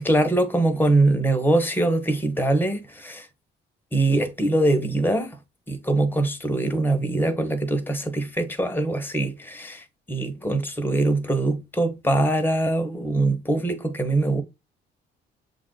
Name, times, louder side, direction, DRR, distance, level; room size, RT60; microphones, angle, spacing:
voice 1, 0.0-3.3 3.9-5.4 5.7-14.4, right 2 dB, 10° left, 0.9 m, -23 dB
7.2 x 2.4 x 2.2 m
cardioid pair, 90°, 20 cm